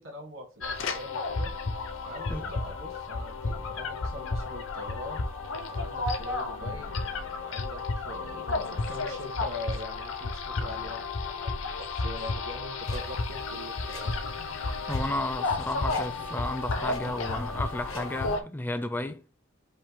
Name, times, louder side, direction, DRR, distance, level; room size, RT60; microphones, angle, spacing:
voice 1, 0.0-1.5 2.0-5.2 5.7-6.9 7.4-13.7, equal, 75° right, 1.6 m, -42 dB
sound 1, 0.6-18.4, left 3 dB, 70° left, 0.6 m, -32 dB
Clock, 12.8-18.4, left 2 dB, 85° left, 1.6 m, -48 dB
voice 2, 14.9-19.2, left 1 dB, 10° left, 0.4 m, -33 dB
5.3 x 2.1 x 3.5 m
head